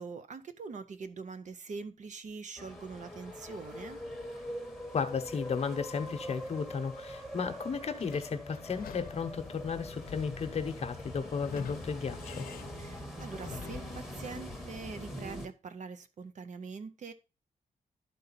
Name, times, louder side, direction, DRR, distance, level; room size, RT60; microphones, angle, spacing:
voice 1, 0.0-4.0 12.7-17.1, right 5 dB, 55° right, 0.7 m, -43 dB
sound 1, 2.6-15.5, equal, ahead, 1.1 m, -43 dB
voice 2, 4.9-12.5, left 5 dB, 45° left, 0.9 m, -34 dB
Sliding door / Squeak, 8.0-14.1, left 7 dB, 90° left, 0.6 m, -47 dB
11.5 x 4.0 x 4.0 m
wide cardioid pair, 135°, 15 cm